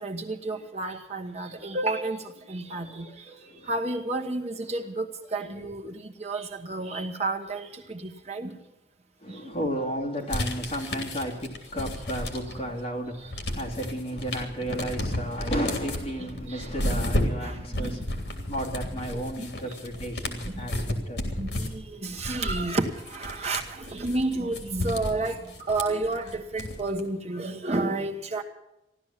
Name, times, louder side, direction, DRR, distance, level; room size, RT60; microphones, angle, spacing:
voice 1, 0.0-2.2 2.5-3.1 3.7-5.0 5.3-5.8 6.2-6.4 6.7-7.7 8.3-8.5 17.4-17.5 21.4-21.5 22.0-23.6 23.9-25.4 25.7-28.4, right 2 dB, 40° right, 1.2 m, -30 dB
voice 2, 2.6-3.7 5.4-5.7 9.2-21.3, equal, 35° left, 3.0 m, -34 dB
sound 1, 10.3-12.7 13.1-27.0, left 1 dB, 65° left, 3.1 m, -32 dB
15.0 x 12.5 x 7.4 m
head